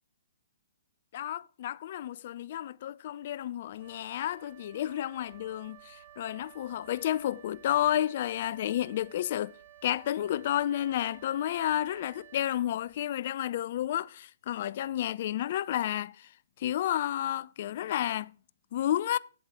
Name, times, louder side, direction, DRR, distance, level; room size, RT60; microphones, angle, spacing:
voice 1, 1.1-9.5 9.8-16.3 16.6-18.3 18.7-19.2, left 12 dB, 50° left, 0.4 m, -31 dB
Wind instrument woodwind instrument, 3.7-13.2, right 11 dB, 50° right, 1.0 m, -54 dB
9.6 x 7.9 x 3.2 m
figure-of-eight pair, 125°, 0 cm